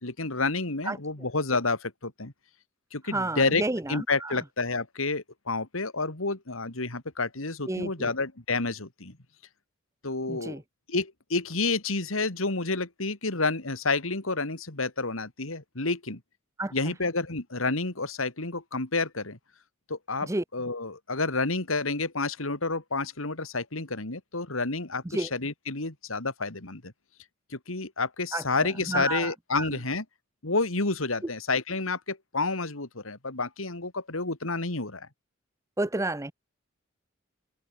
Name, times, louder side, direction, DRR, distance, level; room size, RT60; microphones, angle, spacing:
voice 1, 0.0-2.3 2.9-3.6 3.9-9.2 10.0-10.6 10.9-16.2 16.7-19.4 19.9-26.9 27.5-30.0 30.4-35.1, left 3 dB, 85° left, 2.9 m, -29 dB
voice 2, 3.1-4.4 7.7-8.1 10.3-10.6 16.6-16.7 20.2-20.4 25.1-25.3 28.3-28.4 28.9-29.7 35.8-36.3, right 2 dB, 15° right, 0.7 m, -30 dB
open air
head